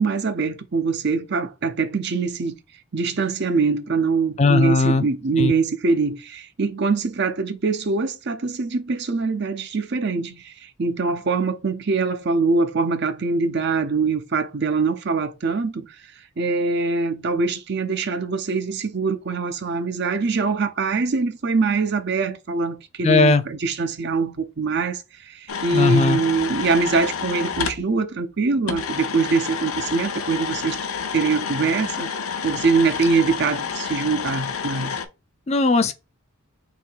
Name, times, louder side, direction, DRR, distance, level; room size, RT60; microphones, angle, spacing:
voice 1, 0.0-2.5 2.9-15.9 16.4-30.8 31.1-32.1 32.4-34.9, right 4 dB, 50° right, 0.6 m, -23 dB
voice 2, 4.4-5.0 5.4-5.5 23.0-23.4 25.7-26.2 35.5-35.9, left 3 dB, 30° left, 0.4 m, -17 dB
sound 1, 25.5-27.8 28.7-35.1, left 6 dB, 80° left, 0.8 m, -29 dB
3.6 x 3.2 x 4.5 m
head